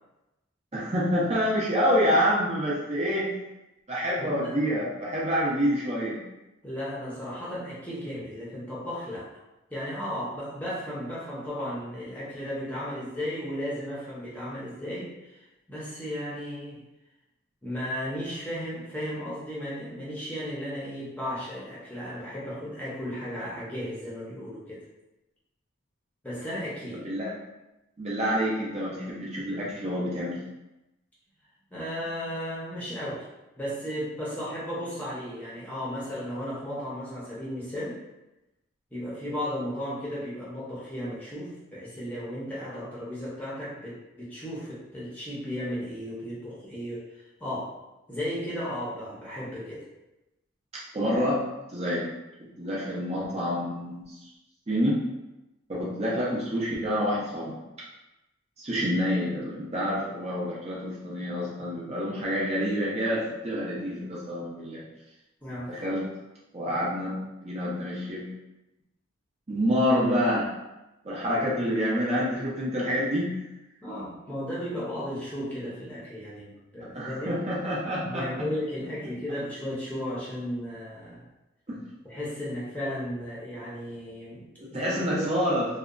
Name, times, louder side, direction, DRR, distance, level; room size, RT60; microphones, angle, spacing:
voice 1, 0.7-3.3 3.9-6.2 26.9-27.3 28.0-30.4 50.9-51.4 51.7-52.1 52.6-54.2 54.7-55.0 55.7-57.5 58.6-64.8 65.7-66.0 66.5-68.3 69.5-70.5 71.0-73.4 76.9-78.2 81.7-81.8 84.6-85.7, equal, 30° right, -6 dB, 0.5 m, -27 dB
voice 2, 4.2-4.5 6.6-9.3 9.7-16.8 17.6-24.8 26.2-27.0 31.7-33.3 33.6-38.0 38.9-47.7 48.1-49.8 65.4-65.8 73.8-77.4 78.0-81.2 82.0-85.3, equal, 10° left, -8 dB, 0.6 m, -35 dB
2.8 x 2.2 x 2.4 m, 0.97 s
head